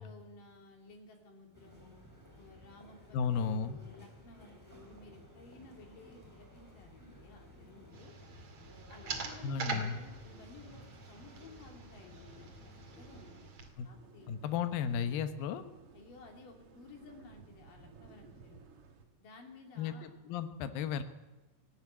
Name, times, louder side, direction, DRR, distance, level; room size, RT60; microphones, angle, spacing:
voice 1, 0.0-2.0 2.3-8.1 8.9-13.5 13.8-14.4 15.9-18.7 19.2-20.1, left 3 dB, 50° left, 2 dB, 4.2 m, -55 dB
sound 1, 1.5-13.3, left 1 dB, 5° right, 3.8 m, -56 dB
voice 2, 3.1-3.8 9.4-10.0 13.8-13.9 14.3-15.6 19.8-21.0, left 7 dB, 70° left, 9 dB, 2.3 m, -34 dB
sound 2, 7.9-13.7, right 4 dB, 45° right, 2.3 m, -44 dB
sound 3, 12.8-19.0, right 5 dB, 80° right, 1.2 m, -58 dB
18.0 x 16.0 x 9.7 m, 1.1 s
omnidirectional pair, 5.4 m